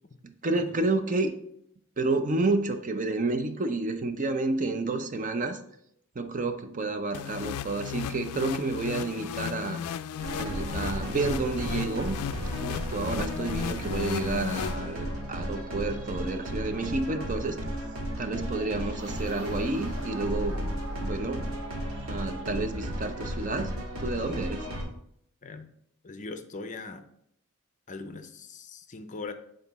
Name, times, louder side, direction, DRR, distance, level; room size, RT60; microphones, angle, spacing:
voice 1, 0.2-1.3 2.0-5.6 6.2-9.8 10.4-12.2 12.6-17.8 18.2-20.6 21.0-21.5 22.1-24.7, right 3 dB, 35° right, 8 dB, 0.5 m, -30 dB
sound 1, 7.1-15.3, left 9 dB, 85° left, 0.3 m, -35 dB
sound 2, 10.2-24.8, equal, 70° right, 1.7 m, -34 dB
voice 2, 26.0-27.0 27.9-29.3, left 3 dB, 35° left, 8 dB, 0.5 m, -40 dB
8.0 x 3.9 x 4.1 m, 0.71 s
head